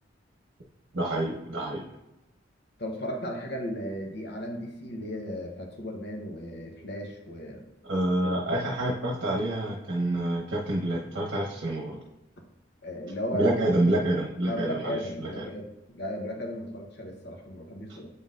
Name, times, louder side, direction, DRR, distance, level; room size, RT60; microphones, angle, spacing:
voice 1, 0.9-1.8 7.8-12.0 13.3-15.4, right 1 dB, 70° right, -2 dB, 0.9 m, -27 dB
voice 2, 2.8-7.7 12.8-13.7 14.5-18.1, equal, 60° left, 1 dB, 0.9 m, -35 dB
8.1 x 5.5 x 2.5 m, 0.98 s
head